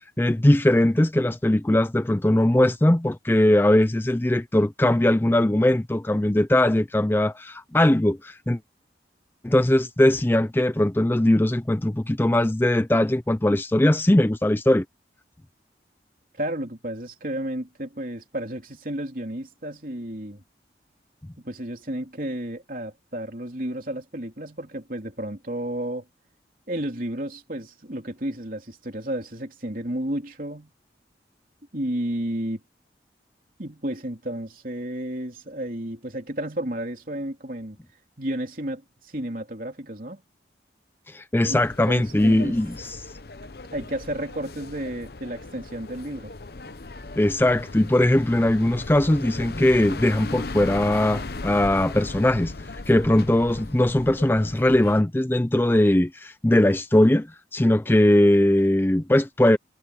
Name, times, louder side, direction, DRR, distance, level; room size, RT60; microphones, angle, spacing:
voice 1, 0.2-8.6 9.4-14.8 41.1-43.0 47.2-52.5 52.9-59.6, left 1 dB, 10° left, 0.4 m, -20 dB
voice 2, 16.4-20.4 21.4-26.1 26.7-30.7 31.7-32.6 33.6-37.8 38.2-40.2 41.5-41.6 41.9-42.6 43.7-46.3, right 1 dB, 50° right, 3.5 m, -32 dB
sound 1, 41.5-55.0, left 3 dB, 55° left, 0.8 m, -37 dB
head